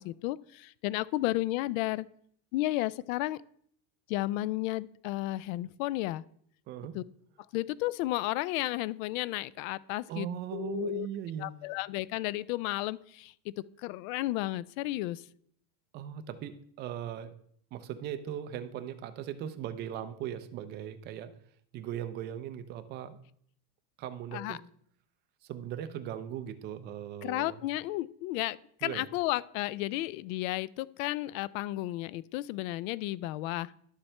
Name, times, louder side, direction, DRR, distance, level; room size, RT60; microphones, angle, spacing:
voice 1, 0.0-2.1 2.5-3.4 4.1-6.2 6.9-7.0 7.5-11.1 11.4-13.5 13.8-15.3 24.3-24.6 27.2-33.7, left 17 dB, 65° left, 20 dB, 0.5 m, -33 dB
voice 2, 6.7-7.0 10.1-11.6 15.9-17.3 17.7-21.3 21.7-23.2 24.0-24.6 25.4-27.6 28.8-29.1, right 10 dB, 25° right, 10 dB, 0.4 m, -39 dB
11.0 x 7.1 x 3.2 m, 0.65 s
cardioid pair, 170°, 43 cm